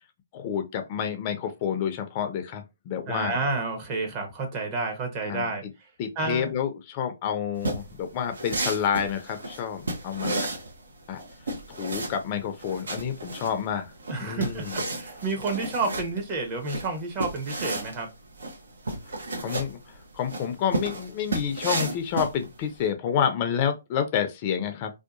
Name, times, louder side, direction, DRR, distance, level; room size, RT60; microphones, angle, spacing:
voice 1, 0.3-3.4 5.2-5.5 6.0-10.6 11.1-11.2 11.7-13.9 14.2-14.8 19.4-24.9, left 8 dB, 35° left, 0.4 m, -29 dB
voice 2, 3.1-5.9 6.2-6.6 14.1-18.1, right 3 dB, 35° right, 0.9 m, -30 dB
sound 1, 7.6-22.8, right 2 dB, 80° right, 0.9 m, -33 dB
2.7 x 2.2 x 2.5 m
hypercardioid pair, 140°, 0 cm